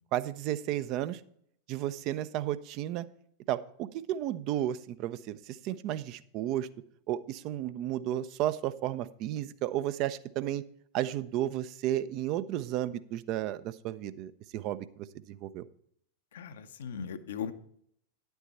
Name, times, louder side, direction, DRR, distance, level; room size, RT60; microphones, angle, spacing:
voice 1, 0.1-1.2 1.7-3.0 3.5-6.7 7.1-10.6 10.9-15.7, right 12 dB, 40° right, 15 dB, 0.5 m, -33 dB
voice 2, 16.3-17.5, left 7 dB, 60° left, 10 dB, 0.7 m, -38 dB
10.0 x 8.0 x 4.2 m, 0.67 s
figure-of-eight pair, 90°, 0 cm